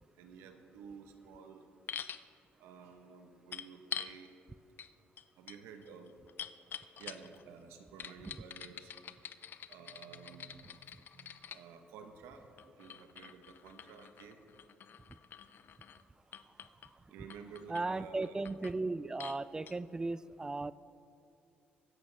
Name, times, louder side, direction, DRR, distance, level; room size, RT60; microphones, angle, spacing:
voice 1, 0.1-1.7 2.6-4.3 5.4-6.1 7.0-8.9 9.7-10.9 11.1-14.5 17.1-18.4, right 6 dB, 90° right, 6 dB, 1.0 m, -52 dB
sound 1, 1.9-2.2 3.5-4.2 4.8-4.9 5.2-7.4 8.0-11.6 12.6-16.0 16.3-16.9 17.3-17.8 18.2-18.8 19.2-19.4 19.7-19.8, left 8 dB, 55° left, 0.5 m, -46 dB
voice 2, 17.7-20.7, right 3 dB, 15° right, 17 dB, 0.4 m, -36 dB
24.0 x 8.3 x 3.4 m, 2.7 s
cardioid pair, 85°, 4 cm